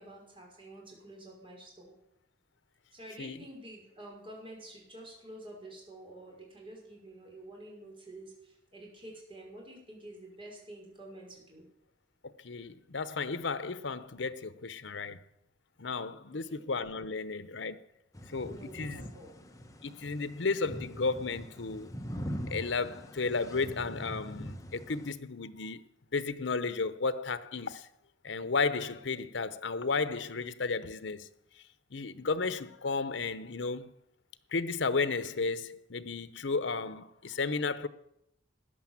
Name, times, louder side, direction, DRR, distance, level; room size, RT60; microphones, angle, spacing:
voice 1, 0.0-2.0 2.9-11.7 16.3-16.7 18.5-19.3, right 1 dB, 30° right, 5.5 m, -49 dB
voice 2, 12.4-15.2 15.8-17.8 18.3-19.1 19.8-21.9 22.5-25.8 26.1-27.9 28.2-31.3 31.9-33.9 34.5-37.9, left 4 dB, 75° left, 0.9 m, -33 dB
sound 1, 18.1-25.1, equal, 20° left, 1.1 m, -42 dB
14.0 x 9.9 x 7.4 m
head